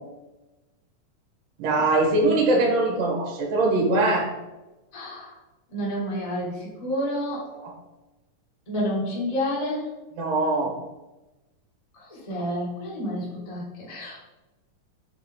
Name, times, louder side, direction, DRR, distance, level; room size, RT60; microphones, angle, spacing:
voice 1, 1.6-4.3 7.6-7.7 10.2-10.7, right 2 dB, 75° right, 1 dB, 2.6 m, -22 dB
voice 2, 4.9-5.4 5.7-7.5 8.7-9.9 11.9-14.2, equal, 15° left, -6 dB, 1.2 m, -29 dB
6.5 x 4.2 x 3.6 m, 1.0 s
omnidirectional pair, 4.0 m